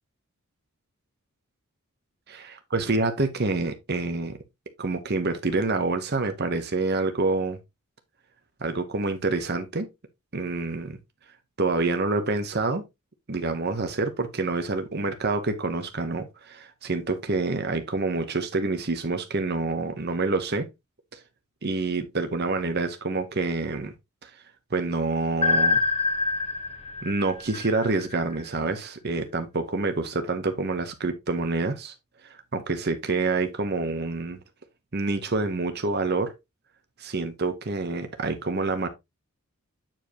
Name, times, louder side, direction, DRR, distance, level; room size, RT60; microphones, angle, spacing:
voice 1, 2.7-4.4 4.8-7.6 8.6-9.9 10.3-11.0 11.6-12.8 13.3-20.7 21.1-21.2 21.6-23.9 24.2-24.3 24.7-25.8 27.0-31.9 32.2-34.4 34.9-36.3 37.0-38.9, right 3 dB, 50° right, 0.9 m, -27 dB
sound 1, 25.4-28.3, left 3 dB, 25° left, 1.3 m, -26 dB
8.8 x 5.0 x 3.0 m
head